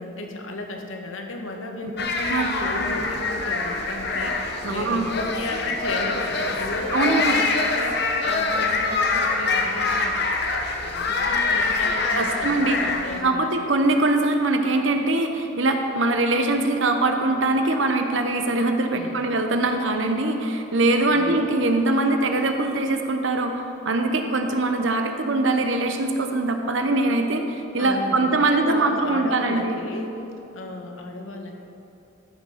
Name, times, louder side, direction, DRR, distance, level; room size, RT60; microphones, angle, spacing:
voice 1, 0.0-10.2 10.7-13.7 18.9-19.3 21.1-21.5 27.8-30.1 30.5-31.5, left 1 dB, 85° left, 3 dB, 1.3 m, -34 dB
sound 1, 2.0-13.2, left 3 dB, 55° left, 1.0 m, -25 dB
voice 2, 4.6-5.2 6.9-7.3 12.2-12.8 13.2-29.8, right 2 dB, 70° right, 5 dB, 1.0 m, -22 dB
14.0 x 6.4 x 5.8 m, 2.8 s
head